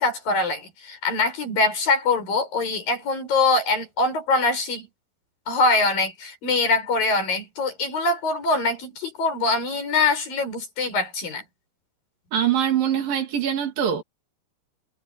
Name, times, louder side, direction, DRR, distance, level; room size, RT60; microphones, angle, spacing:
voice 1, 0.0-4.9 5.5-11.4, left 3 dB, 80° left, 8.9 m, -23 dB
voice 2, 12.3-14.0, right 9 dB, 90° right, 4.8 m, -23 dB
omnidirectional pair, 3.9 m